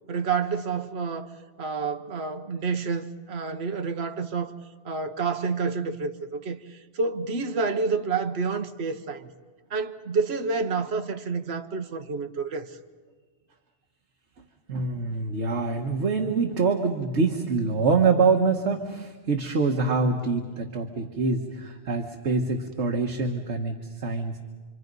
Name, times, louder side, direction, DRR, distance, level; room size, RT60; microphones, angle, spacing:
voice 1, 0.1-1.3 1.6-4.5 4.8-9.3 9.7-12.7, right 4 dB, 70° right, 1.3 m, -29 dB
voice 2, 14.7-24.4, right 4 dB, 85° right, 1.7 m, -25 dB
27.0 x 25.5 x 5.4 m
omnidirectional pair, 1.1 m